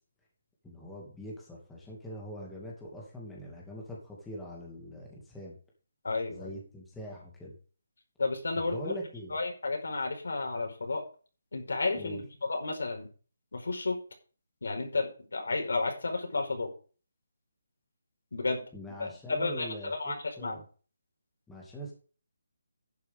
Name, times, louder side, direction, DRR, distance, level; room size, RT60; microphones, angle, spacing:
voice 1, 0.6-5.5 6.3-7.6 8.6-9.3 11.9-12.2 18.7-20.6 21.5-21.9, equal, 5° left, -3 dB, 2.4 m, -43 dB
voice 2, 6.0-6.5 8.2-8.8 9.3-11.0 11.5-13.1 13.5-14.0 14.6-16.7 18.3-18.6 19.0-20.6, left 3 dB, 75° left, 3 dB, 4.9 m, -32 dB
11.5 x 9.3 x 3.7 m, 0.37 s
hypercardioid pair, 175°, 0 cm